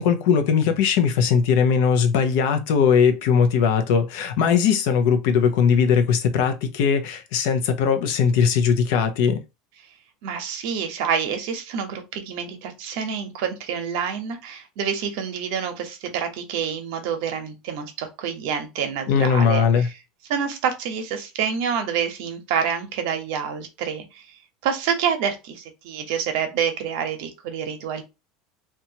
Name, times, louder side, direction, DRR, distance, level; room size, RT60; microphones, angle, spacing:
voice 1, 0.0-9.4 19.1-19.9, left 7 dB, 65° left, 0.5 m, -19 dB
voice 2, 10.2-19.9 20.3-28.0, right 7 dB, 65° right, 0.8 m, -27 dB
2.8 x 2.3 x 2.7 m
cardioid pair, 160°, 0 cm